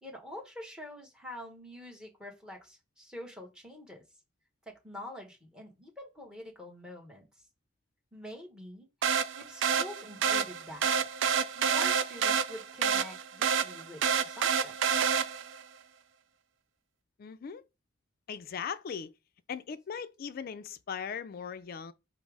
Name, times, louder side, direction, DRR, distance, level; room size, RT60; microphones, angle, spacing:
voice 1, 0.0-4.0 4.7-7.3 8.1-10.9 11.5-15.0, left 1 dB, 5° right, 1.0 m, -46 dB
sound 1, 9.0-15.6, right 7 dB, 65° right, 0.4 m, -28 dB
voice 2, 17.2-17.6 18.3-19.1 19.5-21.9, left 7 dB, 50° left, 0.4 m, -39 dB
5.2 x 2.0 x 4.7 m
head